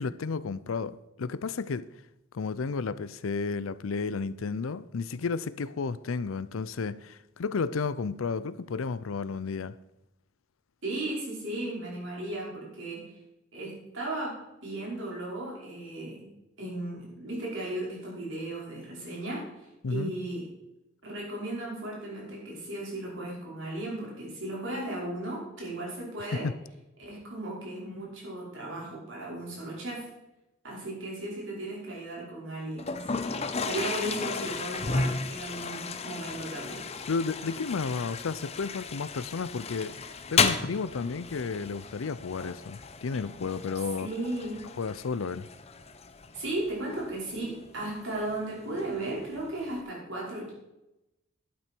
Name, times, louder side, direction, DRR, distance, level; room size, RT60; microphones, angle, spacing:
voice 1, 0.0-1.9 2.3-9.7 19.8-20.1 26.4-26.5 37.1-40.0 40.3-44.1 44.8-45.5, left 4 dB, 90° left, 0.5 m, -32 dB
voice 2, 10.8-13.0 13.5-14.4 14.6-16.3 16.6-20.5 21.0-26.5 27.0-30.1 30.6-36.8 44.0-44.6 46.3-50.5, right 1 dB, 70° right, 5.1 m, -36 dB
Toilet flush, 32.8-49.8, left 5 dB, 30° left, 0.7 m, -34 dB
11.5 x 9.0 x 4.5 m
head